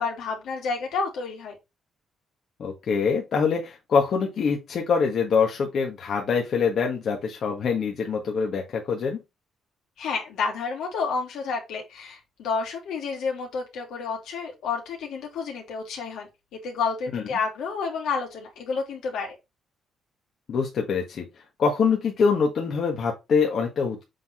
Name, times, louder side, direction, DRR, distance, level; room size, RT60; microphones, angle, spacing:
voice 1, 0.0-1.6 10.0-16.3 16.6-19.4, left 5 dB, 85° left, 2.8 m, -30 dB
voice 2, 2.6-9.2 17.1-17.2 20.5-21.2 21.6-24.0, left 5 dB, 60° left, 1.7 m, -24 dB
7.5 x 4.0 x 4.4 m
cardioid pair, 90°, 0 cm